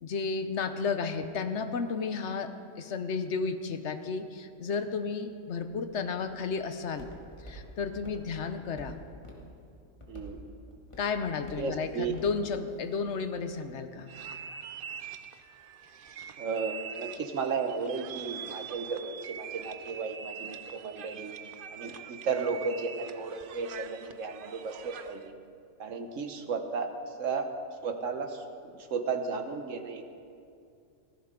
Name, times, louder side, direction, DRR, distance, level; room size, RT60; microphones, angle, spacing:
voice 1, 0.0-2.5 2.8-7.1 7.4-9.1 11.0-14.1, left 5 dB, 65° left, 9 dB, 1.0 m, -32 dB
Walk footsteps, 5.6-13.5, equal, 25° left, 2.0 m, -50 dB
voice 2, 10.1-10.4 11.6-12.1 16.4-21.3 21.7-25.3 25.8-27.5 27.8-30.1, right 5 dB, 70° right, 6 dB, 1.4 m, -34 dB
sound 1, 14.1-25.3, right 8 dB, 55° right, 0.6 m, -44 dB
17.0 x 15.0 x 3.8 m, 2.4 s
omnidirectional pair, 1.3 m